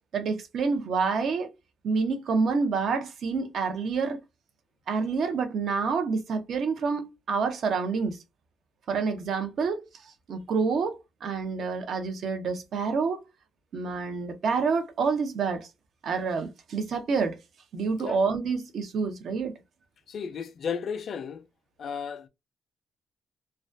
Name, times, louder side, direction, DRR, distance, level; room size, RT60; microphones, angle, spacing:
voice 1, 0.1-1.5 1.8-4.2 4.9-8.2 8.9-9.8 10.3-13.2 13.7-15.7 16.0-17.4 17.7-19.5, right 5 dB, 65° right, 0.6 m, -28 dB
voice 2, 20.1-21.4 21.8-22.3, left 6 dB, 55° left, 0.3 m, -34 dB
2.2 x 2.2 x 2.5 m
cardioid pair, 90°, 0 cm